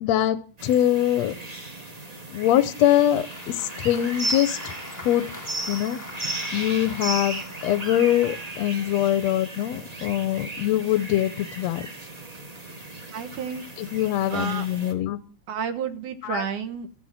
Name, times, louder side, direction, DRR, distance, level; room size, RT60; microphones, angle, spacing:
voice 1, 0.0-1.3 2.3-4.6 5.0-5.3 5.7-6.0 6.5-11.9 13.8-15.2 16.2-16.5, left 12 dB, 70° left, 12 dB, 1.8 m, -23 dB
sound 1, 0.6-14.9, right 2 dB, 25° right, 0.8 m, -36 dB
Applause, 2.8-8.8, left 2 dB, 25° left, 0.3 m, -43 dB
voice 2, 13.1-13.6 14.3-14.7 15.5-16.9, right 6 dB, 75° right, 9 dB, 2.6 m, -30 dB
14.5 x 9.1 x 7.5 m, 0.40 s
omnidirectional pair, 3.8 m